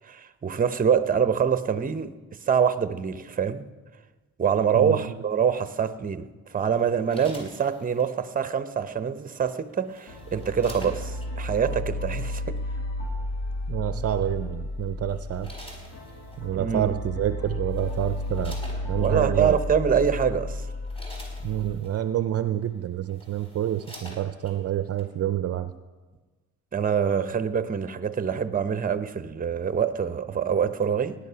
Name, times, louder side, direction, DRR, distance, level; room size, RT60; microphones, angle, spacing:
voice 1, 0.1-2.1 2.5-3.7 4.4-6.3 6.5-12.6 16.5-16.9 19.0-20.6 26.7-31.2, right 7 dB, 30° right, 12 dB, 0.8 m, -25 dB
voice 2, 4.7-5.2 13.7-15.5 16.4-19.6 21.4-25.7, right 12 dB, 50° right, 11 dB, 0.6 m, -28 dB
sound 1, 6.7-8.1 9.4-11.3 12.3-12.6 14.3-14.6 15.1-16.5 17.3-17.4 17.7-19.1 19.9-20.0 20.5-22.0 22.7-22.8 23.0-24.6 25.0-25.1, equal, 15° left, 4.9 m, -47 dB
sound 2, 10.1-21.8, left 1 dB, 60° left, 2.5 m, -33 dB
17.5 x 10.5 x 5.7 m, 1.3 s
cardioid pair, 90°, 30 cm